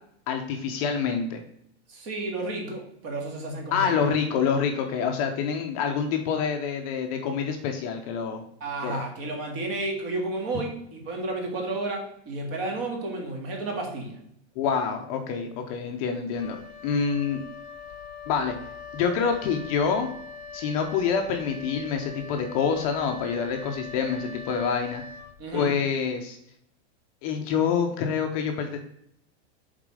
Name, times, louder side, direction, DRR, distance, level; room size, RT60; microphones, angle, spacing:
voice 1, 0.3-1.4 3.7-8.5 8.8-9.0 14.6-16.6 16.8-17.4 18.3-18.6 18.9-20.1 20.5-25.0 25.5-26.4 27.2-28.8, left 6 dB, 30° left, 4 dB, 0.6 m, -26 dB
voice 2, 1.9-4.1 8.6-14.2 25.4-25.7, right 2 dB, 35° right, 2 dB, 1.9 m, -32 dB
Wind instrument woodwind instrument, 16.3-25.8, left 4 dB, 65° left, 0.8 m, -42 dB
7.4 x 4.0 x 4.8 m, 0.73 s
supercardioid pair, 170°, 34 cm